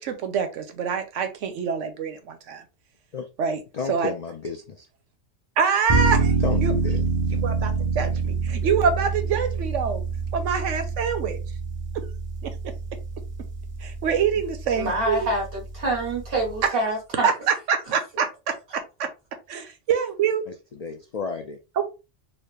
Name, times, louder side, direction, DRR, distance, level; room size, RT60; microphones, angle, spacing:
voice 1, 0.0-2.6 3.4-3.6 3.9-4.1 5.6-6.4 6.6-6.7 7.3-10.0 10.3-11.4 11.9-12.0 12.4-12.5 13.8-15.3 16.7-16.9 17.2-19.1 19.5-20.4 21.8-21.9, right 6 dB, 85° right, 1.0 m, -25 dB
voice 2, 3.7-4.9 6.4-7.0 20.8-21.6, left 5 dB, 90° left, 0.3 m, -32 dB
sound 1, 5.9-16.6, right 4 dB, 30° right, 0.8 m, -27 dB
voice 3, 14.8-17.3, right 1 dB, 50° right, 1.9 m, -26 dB
4.0 x 2.0 x 3.2 m
omnidirectional pair, 1.3 m